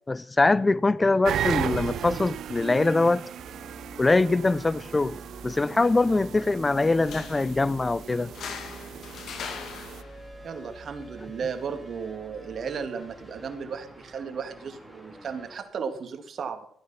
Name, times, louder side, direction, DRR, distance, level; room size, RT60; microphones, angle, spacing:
voice 1, 0.1-3.2 4.0-5.2 5.4-8.3, left 3 dB, 20° left, 0.5 m, -23 dB
sound 1, 1.2-10.0, right 10 dB, 70° right, 0.5 m, -36 dB
sound 2, 3.4-15.6, equal, ahead, 3.3 m, -47 dB
sound 3, 6.9-13.9, left 6 dB, 70° left, 2.2 m, -43 dB
voice 2, 10.4-16.7, right 6 dB, 55° right, 2.3 m, -35 dB
14.5 x 9.3 x 5.8 m
cardioid pair, 90°, 0 cm